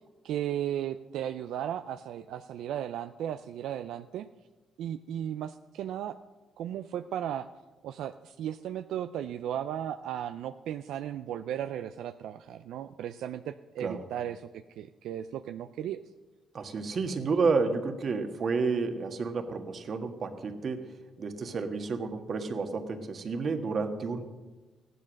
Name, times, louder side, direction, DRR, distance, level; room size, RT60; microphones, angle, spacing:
voice 1, 0.2-4.3 4.8-6.2 6.6-7.5 7.8-14.5 14.8-16.0, right 10 dB, 80° right, 9 dB, 0.4 m, -35 dB
voice 2, 16.5-20.9 21.2-24.2, right 4 dB, 50° right, 6 dB, 1.6 m, -30 dB
15.0 x 11.0 x 6.4 m, 1.2 s
cardioid pair, 90°, 0 cm